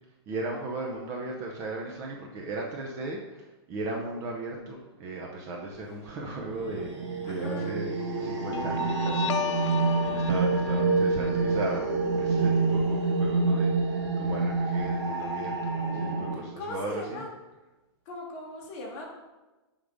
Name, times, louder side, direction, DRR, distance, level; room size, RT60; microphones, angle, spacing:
voice 1, 0.3-7.0 7.3-9.3 9.6-15.5 15.9-17.2, right 2 dB, 20° right, -1 dB, 0.5 m, -37 dB
sound 1, 6.1-16.3, right 3 dB, 85° right, 2.1 m, -27 dB
voice 2, 7.2-7.8 16.6-17.3 18.1-19.1, left 2 dB, 30° left, -1 dB, 1.2 m, -38 dB
Guitar, 8.5-15.5, left 9 dB, 85° left, 0.4 m, -38 dB
6.4 x 3.6 x 4.9 m, 1.1 s
hypercardioid pair, 170°, 15 cm